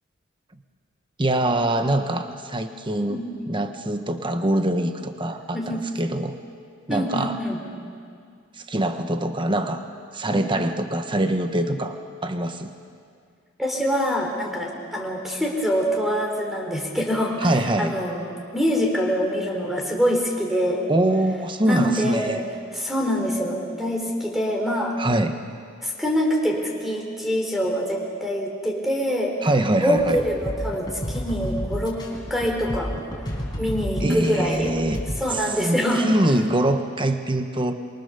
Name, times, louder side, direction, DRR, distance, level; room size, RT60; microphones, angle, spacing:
voice 1, 1.2-6.3 6.9-7.4 8.6-9.8 10.1-12.0 12.2-12.7 17.4-18.0 20.9-22.4 25.0-25.3 29.4-30.2 34.0-35.0 35.3-37.7, right 1 dB, 25° right, 7 dB, 1.2 m, -24 dB
voice 2, 5.5-5.8 6.9-7.6 10.2-10.6 13.6-20.8 21.6-22.4 22.7-25.0 25.8-29.4 29.8-32.0 32.3-32.9 33.6-34.7 35.2-36.0, equal, ahead, 0 dB, 3.7 m, -25 dB
sound 1, 30.0-35.2, equal, 20° left, 4.7 m, -31 dB
26.0 x 24.0 x 7.0 m, 2.2 s
head